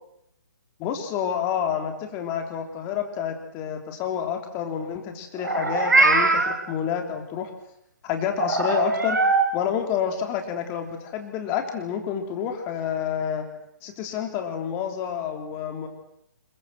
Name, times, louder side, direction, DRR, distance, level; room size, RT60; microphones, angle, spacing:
voice 1, 0.8-7.5 8.0-9.2 9.5-13.5 13.8-15.9, left 8 dB, 20° left, 4 dB, 3.4 m, -29 dB
Meow, 5.4-6.6 8.4-9.5, right 3 dB, 70° right, 5.1 m, -21 dB
27.0 x 22.5 x 7.6 m, 0.81 s
figure-of-eight pair, 135°, 10 cm